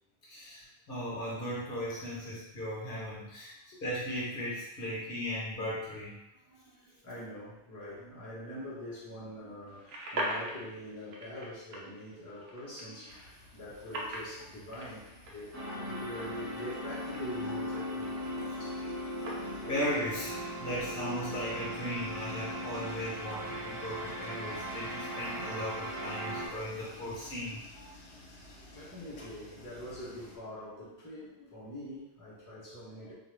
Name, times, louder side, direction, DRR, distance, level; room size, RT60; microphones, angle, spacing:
voice 1, 0.2-3.5 3.8-6.2 18.8-18.9 19.7-27.9, equal, 55° left, -7 dB, 1.0 m, -37 dB
voice 2, 6.5-18.8 23.2-23.3 27.5-27.6 28.3-33.1, left 1 dB, 20° left, -8 dB, 0.7 m, -44 dB
sound 1, 9.7-20.2, right 1 dB, 70° right, 0.9 m, -43 dB
sound 2, 13.1-30.4, left 1 dB, 85° left, 1.0 m, -52 dB
sound 3, 15.5-26.5, equal, 15° right, 0.9 m, -38 dB
2.5 x 2.4 x 3.1 m, 0.87 s
omnidirectional pair, 1.2 m